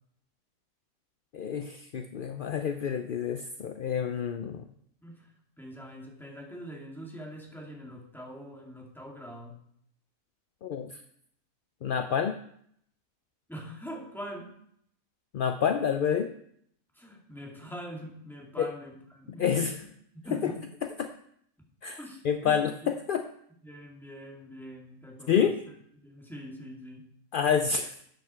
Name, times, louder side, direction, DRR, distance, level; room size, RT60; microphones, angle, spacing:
voice 1, 1.3-4.7 10.6-11.0 11.8-12.4 15.3-16.3 18.6-18.7 19.4-19.8 20.4-20.5 21.0-21.1 21.8-22.0 22.2-23.3 25.3-25.6 27.3-27.9, left 7 dB, 60° left, 8 dB, 0.6 m, -28 dB
voice 2, 5.6-9.6 13.5-14.5 16.9-19.7 20.1-20.6 22.0-22.9 23.6-25.5 26.0-27.1, equal, ahead, -1 dB, 2.6 m, -43 dB
13.0 x 8.5 x 4.6 m, 0.69 s
omnidirectional pair, 1.5 m